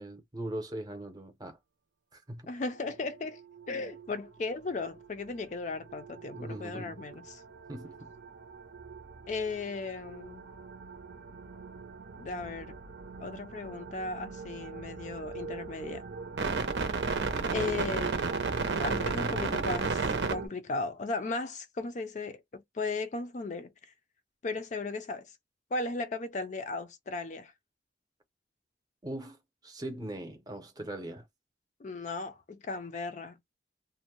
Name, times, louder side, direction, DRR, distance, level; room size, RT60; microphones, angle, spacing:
voice 1, 0.0-1.6 2.1-2.5 6.3-7.0 7.7-8.1 29.0-29.4 29.6-31.2, right 1 dB, 20° right, 0.7 m, -40 dB
voice 2, 2.5-3.4 3.7-7.4 9.3-10.4 12.2-12.8 13.2-16.0 17.5-18.1 18.7-20.0 20.3-23.9 24.4-25.3 25.7-27.5 31.8-33.4, left 3 dB, 40° left, 0.4 m, -36 dB
sound 1, 3.2-4.1 4.8-5.0 5.8-20.5, right 4 dB, 75° right, 0.6 m, -35 dB
2.5 x 2.1 x 2.9 m
head